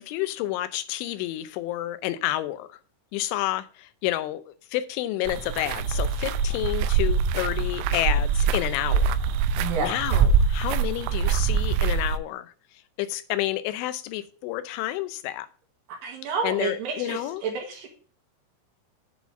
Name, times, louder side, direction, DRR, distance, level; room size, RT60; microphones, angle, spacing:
voice 1, 0.0-2.7 3.1-9.0 9.5-12.5 13.0-15.5 16.4-17.4, left 15 dB, 85° left, 12 dB, 3.1 m, -30 dB
walking on gravel, 5.3-12.2, right 6 dB, 85° right, 3.0 m, -24 dB
voice 2, 9.6-10.0 16.0-17.9, right 4 dB, 65° right, 2 dB, 3.4 m, -30 dB
8.8 x 4.2 x 6.9 m, 0.40 s
omnidirectional pair, 5.5 m